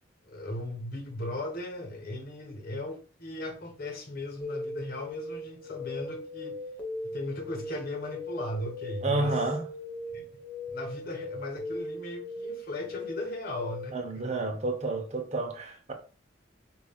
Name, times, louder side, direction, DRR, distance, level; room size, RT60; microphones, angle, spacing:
voice 1, 0.2-6.6 7.0-9.4 10.1-10.3 10.7-14.3, left 1 dB, 50° left, 1.1 m, -37 dB
sound 1, 4.4-14.0, left 1 dB, 10° left, 1.0 m, -39 dB
voice 2, 9.0-9.7 13.9-15.9, right 2 dB, 35° right, 0.8 m, -30 dB
5.3 x 2.5 x 2.3 m
head